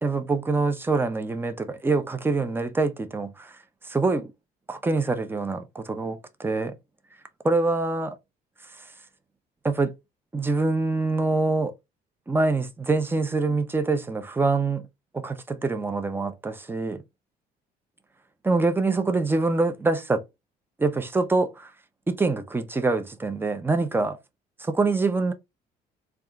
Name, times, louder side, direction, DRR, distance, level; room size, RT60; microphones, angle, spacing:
voice 1, 0.0-3.6 3.8-4.3 4.7-6.8 7.4-8.2 8.8-8.9 9.6-9.9 10.3-11.7 12.3-14.9 15.1-17.0 18.4-20.2 20.8-21.7 22.1-24.2 24.6-25.3, right 3 dB, 15° right, 0.6 m, -25 dB
3.3 x 2.4 x 3.8 m
cardioid pair, 110°, 17 cm